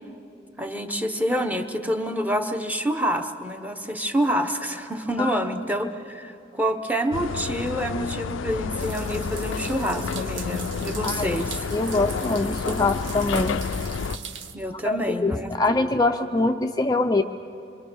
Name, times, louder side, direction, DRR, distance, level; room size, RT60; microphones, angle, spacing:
voice 1, 0.6-11.7 14.5-15.5, equal, 10° right, 6 dB, 1.1 m, -27 dB
sound 1, 7.1-14.2, left 5 dB, 85° left, 0.5 m, -30 dB
sound 2, 8.8-14.6, right 7 dB, 75° right, 1.3 m, -39 dB
voice 2, 11.0-11.4 11.7-13.6 14.7-17.2, left 2 dB, 20° left, 5 dB, 0.5 m, -24 dB
27.0 x 23.5 x 6.3 m, 2.9 s
head